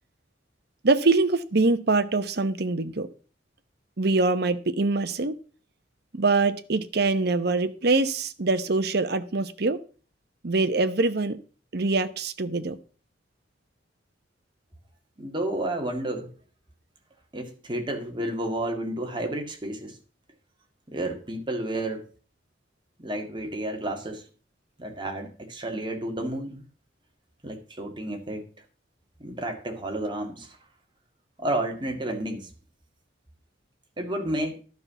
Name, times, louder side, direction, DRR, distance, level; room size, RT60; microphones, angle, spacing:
voice 1, 0.8-3.1 4.0-5.3 6.1-9.8 10.4-11.4 11.7-12.8, right 3 dB, 60° right, 0.9 m, -24 dB
voice 2, 15.2-16.3 17.3-20.0 20.9-22.1 23.0-24.2 24.8-26.6 27.4-28.5 29.2-30.6 31.4-32.5 34.0-34.6, right 1 dB, 25° right, 2.2 m, -31 dB
11.5 x 5.8 x 6.8 m
head